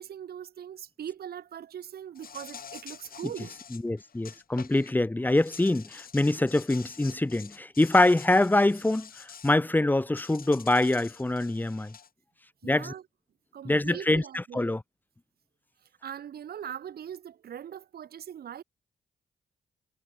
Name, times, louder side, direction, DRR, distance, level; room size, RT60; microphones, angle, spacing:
voice 1, 0.0-3.5 12.6-13.0 13.5-14.7 15.8-18.6, right 9 dB, 70° right, 5.1 m, -41 dB
Insect, 2.2-4.9 5.3-9.6 10.2-12.1, left 7 dB, 60° left, 7.5 m, -47 dB
voice 2, 3.7-11.9 12.6-12.9 13.6-14.8, left 2 dB, 10° left, 0.6 m, -25 dB
supercardioid pair, 45°, 16 cm